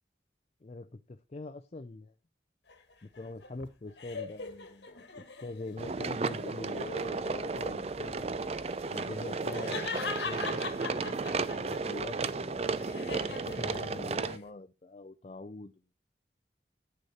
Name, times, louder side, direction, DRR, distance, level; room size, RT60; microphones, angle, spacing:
voice 1, 0.6-2.1 3.0-8.4 8.9-12.7 13.3-15.8, left 2 dB, 40° left, 0.5 m, -43 dB
sound 1, 2.7-5.8 6.3-6.9 8.7-11.8 12.2-14.4, left 4 dB, 80° left, 1.4 m, -41 dB
sound 2, 5.8-14.4, right 4 dB, 35° right, 0.4 m, -34 dB
8.8 x 6.4 x 4.2 m
head